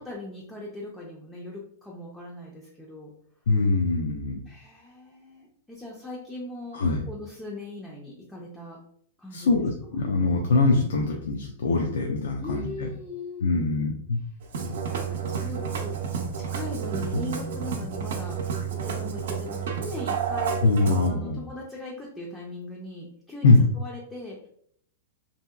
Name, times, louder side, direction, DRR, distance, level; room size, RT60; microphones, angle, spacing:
voice 1, 0.0-3.1 4.5-8.8 9.2-10.0 12.4-13.8 14.9-20.6 21.1-24.5, left 2 dB, 5° left, -4 dB, 0.4 m, -40 dB
voice 2, 3.5-4.4 6.7-7.0 9.3-12.7 13.4-14.2 20.6-21.4 23.4-23.6, left 3 dB, 85° left, 0 dB, 0.4 m, -22 dB
Musical instrument, 14.4-21.1, right 6 dB, 70° right, 0.6 m, -30 dB
2.8 x 2.7 x 2.3 m, 0.65 s
supercardioid pair, 165°, 0 cm